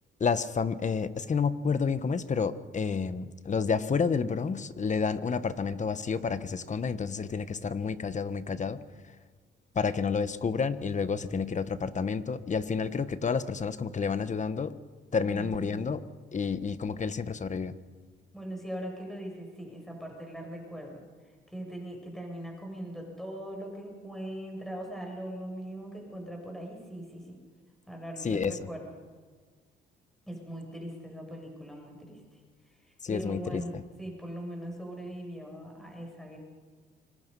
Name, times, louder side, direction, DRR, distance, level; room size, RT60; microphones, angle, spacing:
voice 1, 0.2-8.8 9.7-14.7 15.1-16.0 16.3-17.7 28.2-28.6 33.0-33.8, left 5 dB, 35° left, 13 dB, 1.3 m, -30 dB
voice 2, 15.2-15.9 18.3-21.0 21.5-27.4 27.9-28.9 30.3-32.4 32.8-36.4, right 1 dB, ahead, 1 dB, 6.9 m, -40 dB
26.0 x 23.5 x 5.5 m, 1.5 s
cardioid pair, 90°, 20 cm